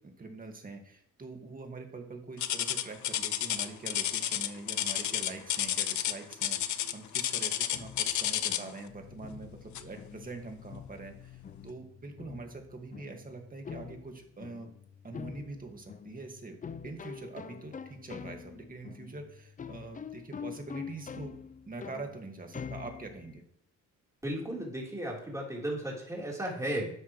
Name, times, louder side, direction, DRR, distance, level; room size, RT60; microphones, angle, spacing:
voice 1, 0.0-14.7 15.0-16.6 16.8-21.3 21.7-23.4, right 3 dB, 30° right, 3 dB, 2.0 m, -44 dB
sound 1, 2.4-8.8 9.7-10.0 10.6-10.7 11.3-11.4, left 11 dB, 70° left, 0.8 m, -31 dB
sound 2, 7.7-23.4, left 6 dB, 25° left, 0.5 m, -46 dB
voice 2, 24.2-26.9, right 1 dB, 10° right, -3 dB, 3.9 m, -35 dB
12.0 x 8.2 x 3.2 m, 0.66 s
cardioid pair, 90°, 30 cm